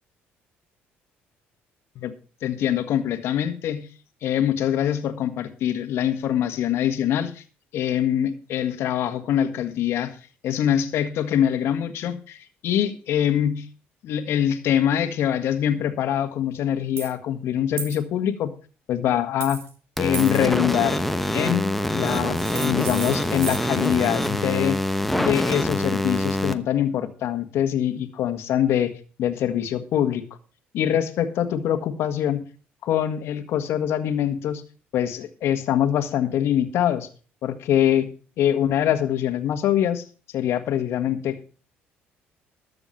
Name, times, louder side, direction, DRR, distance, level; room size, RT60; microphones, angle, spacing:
voice 1, 2.4-3.9 4.2-7.4 7.7-10.2 10.4-12.4 12.6-13.7 14.0-18.5 18.9-19.6 20.0-21.0 21.3-24.8 25.2-28.9 29.2-30.2 30.7-32.4 32.8-34.6 34.9-37.1 37.4-38.1 38.4-40.0 40.3-41.4, left 10 dB, 70° left, 9 dB, 1.6 m, -24 dB
sound 1, 17.0-17.1 17.8-18.0 19.4-19.7 20.1-20.4 22.0-24.3, right 6 dB, 65° right, 3.0 m, -35 dB
sound 2, 20.0-26.5, left 1 dB, 5° left, 1.0 m, -25 dB
13.0 x 7.0 x 5.7 m, 0.38 s
cardioid pair, 100°, 5 cm